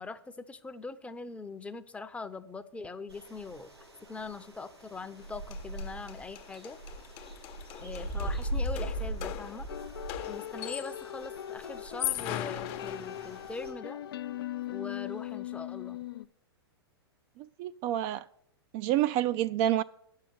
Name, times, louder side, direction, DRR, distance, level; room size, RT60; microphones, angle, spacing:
voice 1, 0.0-3.7 4.1-6.8 7.8-9.7 10.3-14.0 14.7-16.0, left 3 dB, 10° left, 11 dB, 0.6 m, -42 dB
sound 1, 3.1-13.7, right 1 dB, 90° right, 4.1 m, -40 dB
sound 2, 5.2-5.3 5.5-11.1 11.8-13.6, left 13 dB, 40° left, 0.8 m, -40 dB
sound 3, 9.7-16.3, left 12 dB, 65° left, 0.4 m, -40 dB
voice 2, 17.4-18.2 18.7-19.8, right 12 dB, 35° right, 12 dB, 0.4 m, -28 dB
10.0 x 6.6 x 7.6 m, 0.72 s
figure-of-eight pair, 105°, 13 cm